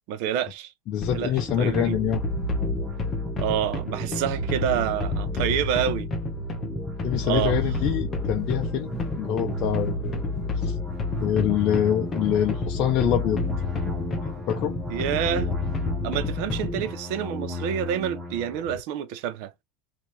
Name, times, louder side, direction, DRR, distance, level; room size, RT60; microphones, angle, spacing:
voice 1, 0.1-0.7 1.1-2.0 3.4-6.1 7.2-7.6 14.9-15.5 16.0-19.5, right 10 dB, 65° right, 0.8 m, -28 dB
voice 2, 0.9-2.2 7.0-8.9 9.2-10.1 10.6-10.8 11.2-13.4 14.2-14.8, left 10 dB, 45° left, 0.7 m, -25 dB
sound 1, 1.0-16.9, left 3 dB, 25° left, 1.1 m, -30 dB
sound 2, 1.7-18.8, right 1 dB, 20° right, 1.4 m, -35 dB
sound 3, 7.3-16.9, right 2 dB, 10° left, 1.4 m, -42 dB
3.6 x 2.8 x 4.7 m
supercardioid pair, 135°, 0 cm